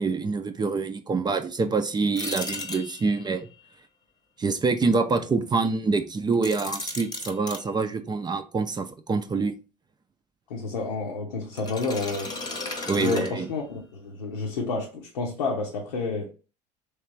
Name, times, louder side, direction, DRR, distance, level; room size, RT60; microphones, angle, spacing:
voice 1, 0.0-3.5 4.4-9.5 12.9-13.5, right 4 dB, 20° right, 0.5 m, -26 dB
sound 1, 2.2-3.3 6.3-7.6 11.5-13.8, left 3 dB, 20° left, 0.9 m, -35 dB
voice 2, 10.5-12.4 13.0-16.3, left 4 dB, 85° left, 0.8 m, -30 dB
3.2 x 3.2 x 3.2 m
hypercardioid pair, 70°, 21 cm